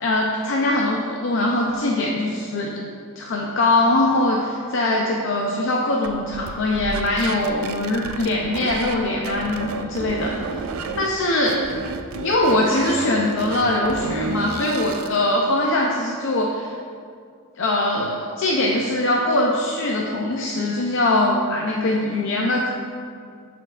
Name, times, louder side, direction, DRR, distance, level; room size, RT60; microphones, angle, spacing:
voice 1, 0.0-2.8 3.2-10.6 11.0-11.6 12.2-16.7 17.6-22.7, left 1 dB, 65° left, -1 dB, 0.5 m, -22 dB
sound 1, 6.0-9.0 9.2-11.1 11.4-15.2, right 4 dB, 85° right, 0.4 m, -31 dB
12.0 x 4.5 x 2.4 m, 2.2 s
head